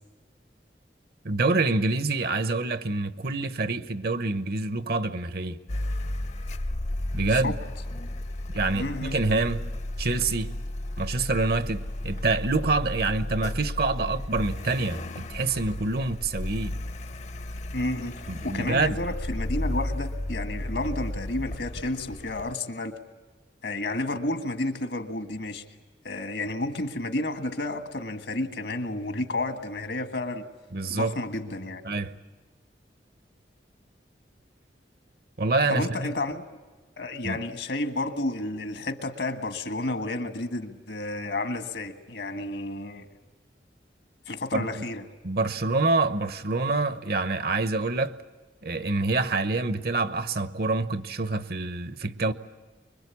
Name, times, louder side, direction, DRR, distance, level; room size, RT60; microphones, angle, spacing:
voice 1, 1.2-5.6 7.1-7.5 8.5-9.6 10.0-10.5 11.0-16.7 18.3-19.0 30.7-31.1 31.8-32.2 35.4-36.1 37.2-37.4 44.5-44.8 45.2-48.1 48.6-52.3, right 3 dB, 60° right, 0.9 m, -26 dB
Car, 5.7-22.6, left 1 dB, 40° left, 0.7 m, -33 dB
voice 2, 8.7-9.2 17.7-22.9 23.6-25.6 26.0-30.4 30.9-31.8 35.7-36.4 37.0-43.0 44.3-45.0, left 2 dB, 75° left, 1.7 m, -31 dB
25.0 x 22.5 x 8.4 m
head